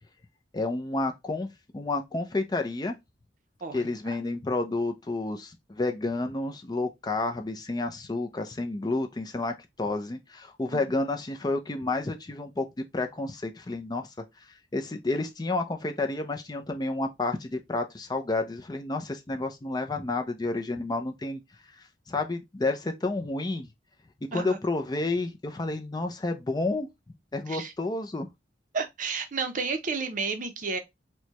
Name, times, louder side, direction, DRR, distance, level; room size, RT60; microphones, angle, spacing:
voice 1, 0.5-1.5 1.7-2.9 3.7-14.1 14.5-21.4 21.7-23.7 24.2-26.9 27.3-28.3, left 2 dB, 25° left, 0.4 m, -30 dB
voice 2, 3.6-4.2 10.7-10.8 24.3-24.6 27.5-27.7 28.7-30.8, right 4 dB, 45° right, 0.6 m, -32 dB
4.5 x 2.2 x 2.9 m
head